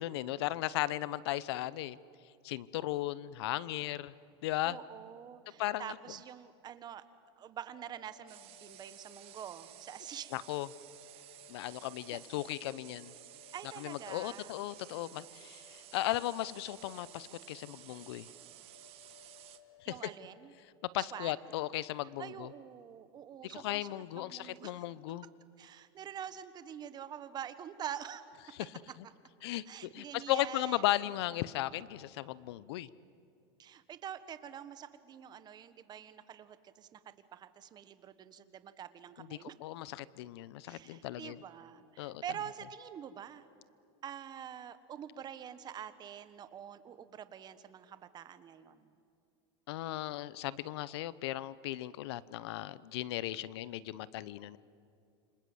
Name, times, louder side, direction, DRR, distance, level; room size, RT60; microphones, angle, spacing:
voice 1, 0.0-2.0 2.4-4.1 4.4-4.8 5.6-6.0 10.3-10.7 11.5-13.1 13.8-18.3 19.8-19.9 20.9-22.5 23.4-25.3 28.5-28.7 29.0-29.1 29.4-32.9 39.2-41.4 42.0-42.2 49.7-54.6, left 15 dB, 80° left, 19 dB, 0.8 m, -36 dB
voice 2, 4.6-7.0 7.4-10.3 12.1-12.2 13.5-14.5 19.9-20.5 21.1-21.3 22.2-23.9 24.1-24.8 25.6-28.2 29.7-30.8 33.6-39.5 40.7-43.5 44.0-48.9, right 9 dB, 30° right, 13 dB, 1.4 m, -46 dB
sound 1, 7.7-20.5, left 7 dB, 65° left, 2.5 m, -62 dB
sound 2, 8.3-19.6, right 15 dB, 45° right, 1.5 m, -54 dB
28.5 x 26.0 x 8.0 m, 2.5 s
supercardioid pair, 135°, 13 cm